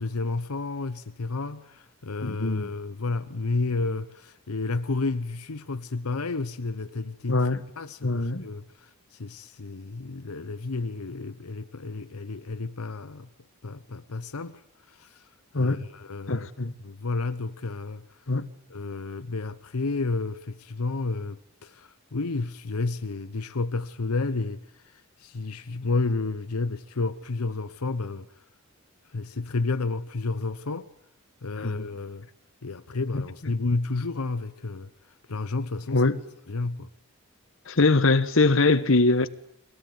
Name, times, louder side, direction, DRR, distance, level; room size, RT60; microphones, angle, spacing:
voice 1, 0.0-7.5 7.8-13.3 13.6-14.6 14.9-15.3 15.5-16.5 16.8-18.0 18.7-28.3 29.1-30.9 31.4-32.3 32.6-34.9 35.3-36.1 36.5-36.9, left 3 dB, 90° left, 0.9 m, -31 dB
voice 2, 2.2-2.7 7.3-7.6 8.0-8.5 15.5-15.8 16.3-16.7 18.3-18.5 31.6-31.9 33.1-33.2 35.9-36.2 37.7-39.3, left 3 dB, 65° left, 1.2 m, -22 dB
23.5 x 17.5 x 9.4 m
head